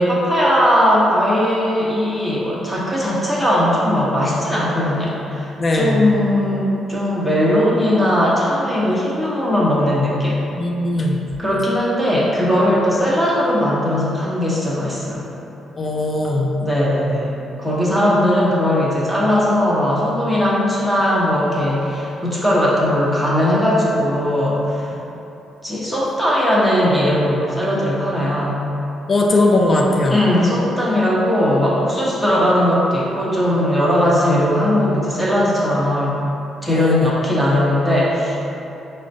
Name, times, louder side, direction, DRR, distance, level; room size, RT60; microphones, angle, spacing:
voice 1, 0.0-10.4 11.4-15.3 16.6-17.3 17.6-25.0 25.6-28.6 30.1-36.2 36.6-38.4, left 1 dB, 5° left, -7 dB, 0.8 m, -18 dB
voice 2, 5.6-6.2 10.6-11.2 15.8-16.5 24.9-25.0 29.1-30.2 36.7-37.1, left 2 dB, 35° left, 0 dB, 0.4 m, -19 dB
4.9 x 2.1 x 2.6 m, 3.0 s
cardioid pair, 90°, 0 cm